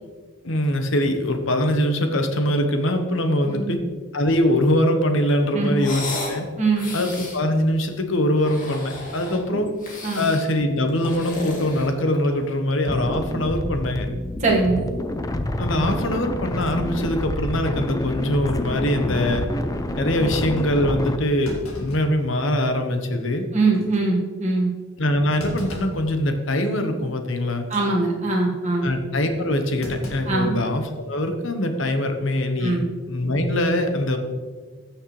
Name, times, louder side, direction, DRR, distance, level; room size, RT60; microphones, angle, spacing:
voice 1, 0.4-3.8 4.1-6.5 6.9-9.7 10.1-14.1 15.6-19.5 20.0-23.5 25.0-27.7 28.8-32.8 33.1-34.2, left 1 dB, 65° left, 6 dB, 1.0 m, -23 dB
sound 1, 5.7-6.4 6.7-7.4 8.3-9.4 9.8-10.5 10.9-12.4, left 2 dB, 40° left, 2.0 m, -33 dB
voice 2, 6.6-6.9 9.5-9.6 10.0-10.3 14.4-14.8 23.5-24.7 27.7-28.9 30.3-30.6 32.6-32.9, right 3 dB, 35° right, -3 dB, 1.6 m, -22 dB
sound 2, 12.9-21.2, left 1 dB, 15° left, 0.4 m, -27 dB
Thump thud, 20.5-20.7 21.4-22.8 23.2-23.3 23.7-24.0 25.4-26.1 26.5-26.8 27.6-27.9 29.8-31.0 31.3-31.4 32.6-32.9, left 1 dB, 90° left, 2.1 m, -37 dB
14.5 x 6.4 x 3.2 m, 1.5 s
head